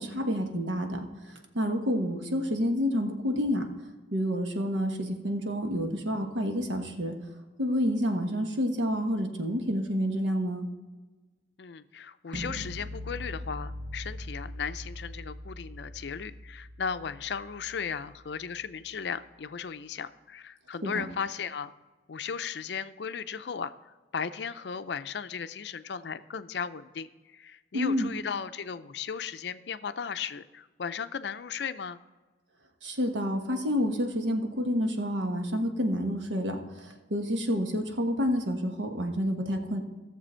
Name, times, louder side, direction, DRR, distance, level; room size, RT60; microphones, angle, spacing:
voice 1, 0.0-3.7 4.1-7.2 7.6-10.7 20.8-21.0 27.7-28.1 32.8-39.8, equal, 90° right, 4 dB, 1.3 m, -29 dB
voice 2, 11.6-21.7 22.1-23.7 24.1-32.0, left 6 dB, 65° left, 12 dB, 0.5 m, -36 dB
sound 1, 12.3-18.3, equal, 60° right, 0.9 m, -41 dB
15.0 x 6.9 x 4.4 m, 1.2 s
head